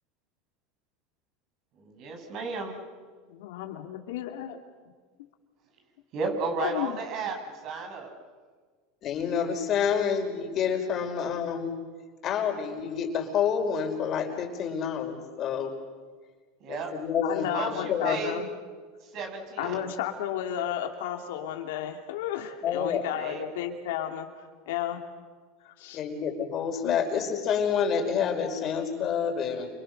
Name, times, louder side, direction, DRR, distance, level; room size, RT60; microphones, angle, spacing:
voice 1, 1.8-2.8 6.1-7.4 7.6-8.1 16.6-16.9 17.4-18.4 19.1-19.8 23.1-23.4, right 4 dB, 50° right, 3 dB, 7.9 m, -33 dB
voice 2, 3.3-4.6 6.6-7.0 17.2-18.5 19.6-24.3 24.7-25.0 25.6-26.0 26.8-27.0, left 11 dB, 75° left, 4 dB, 2.9 m, -33 dB
voice 3, 9.0-11.8 12.2-15.7 16.7-18.2 22.6-23.0 25.9-29.7, left 7 dB, 40° left, 4 dB, 5.1 m, -28 dB
29.5 x 27.5 x 6.7 m, 1.5 s
supercardioid pair, 110°, 0 cm